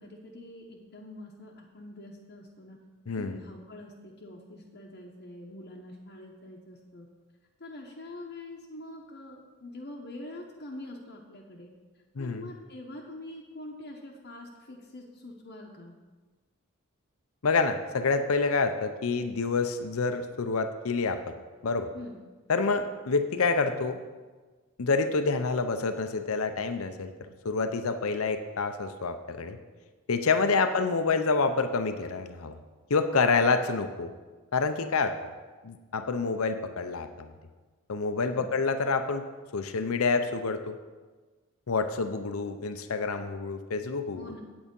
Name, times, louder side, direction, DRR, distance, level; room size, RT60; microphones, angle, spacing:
voice 1, 0.0-2.8 3.2-7.1 7.6-11.7 12.2-16.0 21.9-22.2 38.3-38.5 44.1-44.4, left 1 dB, 50° left, -2 dB, 0.9 m, -45 dB
voice 2, 3.1-3.4 12.2-12.5 17.4-21.3 21.6-21.9 22.5-24.0 24.8-27.1 27.4-29.6 30.1-32.6 32.9-34.1 34.5-35.2 35.6-37.3 37.9-39.2 39.5-40.8 41.7-44.3, left 4 dB, 75° left, 9 dB, 0.6 m, -27 dB
8.8 x 8.5 x 5.3 m, 1.3 s
head